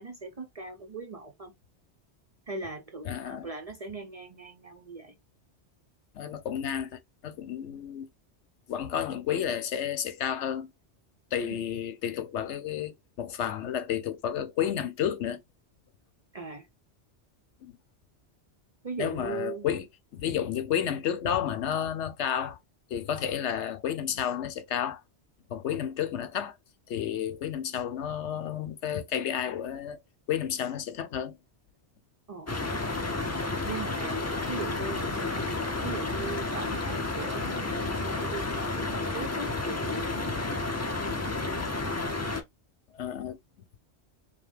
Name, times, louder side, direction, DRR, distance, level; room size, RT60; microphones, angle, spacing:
voice 1, 0.0-1.5 2.5-5.2 11.4-11.7 16.3-16.7 18.8-19.7 32.3-32.6 33.6-41.3, right 3 dB, 45° right, 0.5 m, -40 dB
voice 2, 3.0-3.5 6.1-8.1 8.7-10.7 11.3-15.4 17.6-17.7 19.0-19.9 20.1-22.6 22.9-25.0 25.5-26.6 26.9-30.0 30.3-31.4 42.9-43.4, left 9 dB, 80° left, 1.0 m, -31 dB
sound 1, 32.5-42.4, left 3 dB, 20° left, 0.4 m, -31 dB
5.2 x 2.1 x 3.3 m
omnidirectional pair, 1.2 m